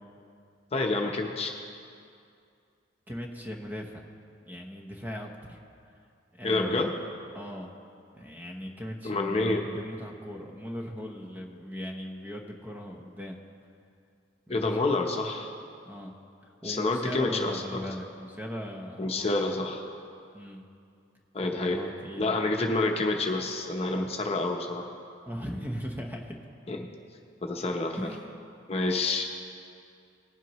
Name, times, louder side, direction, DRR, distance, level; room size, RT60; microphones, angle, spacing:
voice 1, 0.7-1.5 6.4-6.9 9.0-9.6 14.5-15.5 16.6-17.6 19.0-19.8 21.3-21.8 22.2-24.9 26.7-26.8 27.4-28.0 28.7-29.2, left 2 dB, 35° left, 2 dB, 0.8 m, -28 dB
voice 2, 3.1-4.1 4.5-5.6 6.3-7.0 7.3-7.8 8.1-13.4 14.5-14.8 15.9-16.1 16.4-19.3 20.3-20.6 21.4-22.3 23.9-24.1 25.3-26.4 27.9-28.4, equal, 10° right, 1 dB, 0.9 m, -39 dB
19.5 x 7.6 x 3.1 m, 2.4 s
head